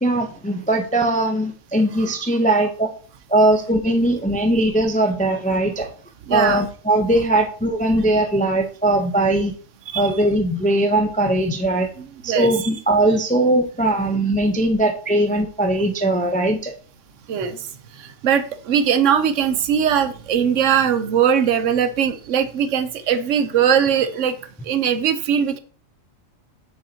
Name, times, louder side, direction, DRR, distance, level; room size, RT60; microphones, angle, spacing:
voice 1, 0.0-2.9 3.3-5.9 6.3-9.5 10.0-11.9 12.2-16.7, right 1 dB, 10° left, 4 dB, 0.3 m, -20 dB
voice 2, 6.3-6.7 9.9-10.1 12.0-12.7 17.3-17.6 18.0-24.4 24.6-25.6, right 8 dB, 75° right, 11 dB, 1.0 m, -20 dB
7.1 x 5.5 x 2.8 m, 0.42 s
omnidirectional pair, 1.3 m